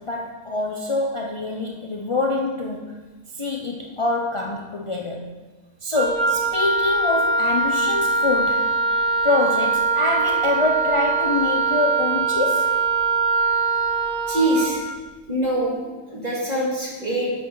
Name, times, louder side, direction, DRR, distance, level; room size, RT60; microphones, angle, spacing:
voice 1, 0.0-3.0 3.4-5.3 5.8-8.7 9.2-12.8, left 2 dB, 50° left, -1 dB, 0.3 m, -25 dB
Wind instrument woodwind instrument, 5.9-14.8, right 3 dB, 80° right, 1.9 m, -22 dB
voice 2, 14.3-14.8 15.3-15.8 16.1-17.3, right 1 dB, 25° right, -5 dB, 2.3 m, -23 dB
9.2 x 7.7 x 3.9 m, 1.2 s
omnidirectional pair, 1.6 m